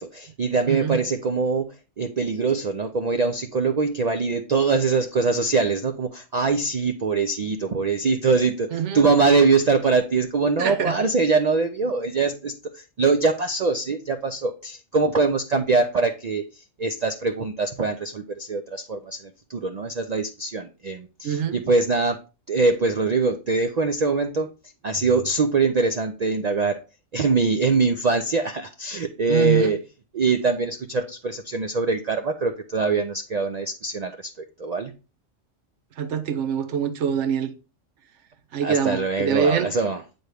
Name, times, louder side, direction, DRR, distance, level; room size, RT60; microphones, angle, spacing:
voice 1, 0.0-22.2 22.5-24.5 24.8-26.8 27.1-29.8 30.1-34.3 34.6-34.9 38.6-40.0, right 4 dB, 80° right, 0.3 m, -23 dB
voice 2, 0.7-1.0 8.7-9.0 10.6-11.0 21.2-21.6 29.3-29.7 36.0-37.5 38.5-39.7, right 7 dB, 65° right, 1.0 m, -24 dB
8.0 x 4.3 x 3.3 m
omnidirectional pair, 1.3 m